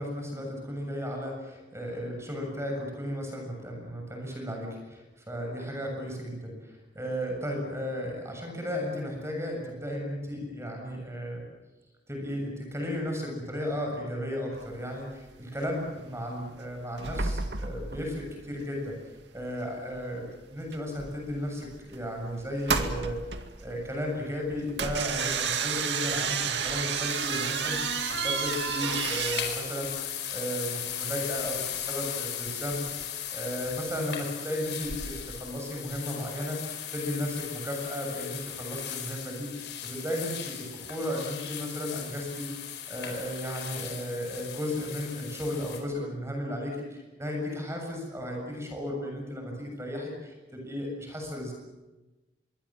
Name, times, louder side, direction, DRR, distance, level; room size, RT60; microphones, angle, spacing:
voice 1, 0.0-11.4 12.1-19.0 19.3-20.2 20.5-23.2 23.6-29.9 30.3-51.5, equal, 15° right, 1 dB, 7.0 m, -34 dB
sound 1, 14.6-14.7 15.0-15.4 15.6-15.8 16.0-16.6 16.8-19.6 19.9-20.1 20.6-29.4, right 5 dB, 85° right, 2.2 m, -31 dB
sound 2, 27.1-45.8, left 9 dB, 80° left, 4.7 m, -37 dB
25.5 x 23.5 x 7.5 m, 1.1 s
head